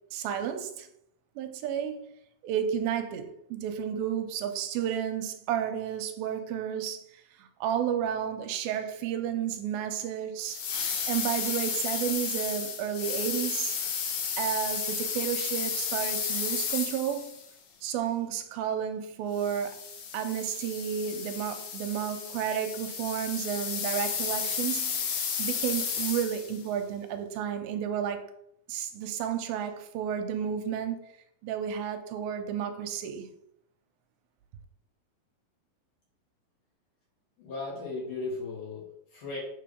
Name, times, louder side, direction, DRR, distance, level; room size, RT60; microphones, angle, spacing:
voice 1, 0.1-0.9 1.4-2.1 2.4-13.8 14.4-17.3 17.8-19.8 20.1-25.0 25.4-28.2 28.7-31.0 31.4-33.3, right 9 dB, 90° right, 2.5 m, -32 dB
sound 1, 10.4-17.5 19.4-26.6, left 6 dB, 80° left, 3.0 m, -33 dB
voice 2, 37.4-39.4, left 3 dB, 55° left, 4.3 m, -36 dB
7.1 x 3.8 x 5.1 m
omnidirectional pair, 4.2 m